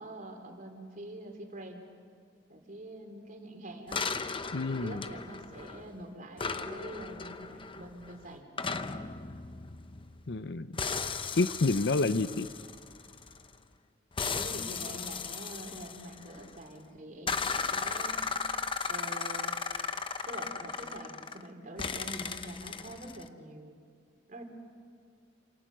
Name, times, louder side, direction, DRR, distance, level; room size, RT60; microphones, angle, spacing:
voice 1, 0.0-1.8 2.5-4.0 4.7-8.5 14.2-18.2 18.8-19.5 20.2-23.8 24.3-24.4, right 1 dB, 45° right, 3 dB, 3.8 m, -45 dB
sound 1, 3.9-6.0 6.4-10.4 10.8-13.5 14.2-16.6 17.3-21.5 21.8-23.3, left 5 dB, 30° left, 0.8 m, -36 dB
voice 2, 4.5-5.0 10.3-10.9 11.4-12.5, left 3 dB, 65° left, 13 dB, 0.7 m, -29 dB
28.5 x 27.5 x 6.3 m, 2.3 s
head